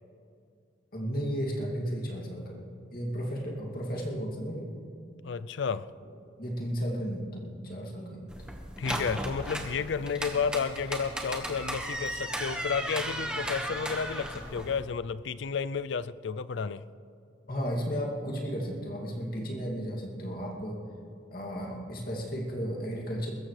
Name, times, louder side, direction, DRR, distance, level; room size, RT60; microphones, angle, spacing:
voice 1, 0.9-2.6 2.9-4.7 6.0-6.1 6.4-8.5 17.5-20.8 21.3-23.3, equal, 45° left, -2 dB, 2.5 m, -34 dB
voice 2, 5.2-5.9 8.8-16.8, left 6 dB, 65° left, 15 dB, 0.4 m, -32 dB
sound 1, 8.3-14.8, right 1 dB, 5° right, 1.3 m, -35 dB
22.5 x 14.0 x 3.3 m, 2.5 s
head